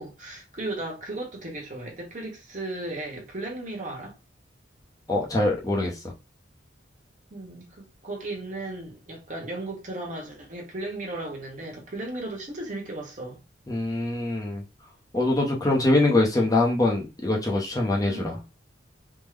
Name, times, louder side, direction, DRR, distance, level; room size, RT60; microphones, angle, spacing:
voice 1, 0.0-4.2 7.3-13.4 18.1-18.4, right 2 dB, 40° right, 1.0 m, -35 dB
voice 2, 5.1-5.9 13.7-14.6 15.1-18.3, left 2 dB, 20° left, 0.6 m, -23 dB
3.6 x 2.0 x 3.2 m
head